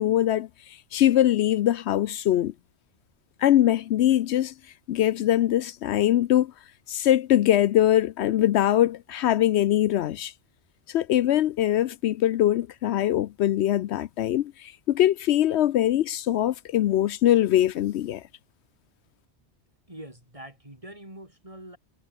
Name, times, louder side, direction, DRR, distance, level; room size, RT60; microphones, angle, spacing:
voice 1, 0.0-2.5 3.4-4.5 4.9-6.5 6.9-10.3 10.9-18.2, left 12 dB, 75° left, 0.8 m, -22 dB
voice 2, 19.9-21.8, right 1 dB, 30° right, 5.7 m, -44 dB
omnidirectional pair, 1.1 m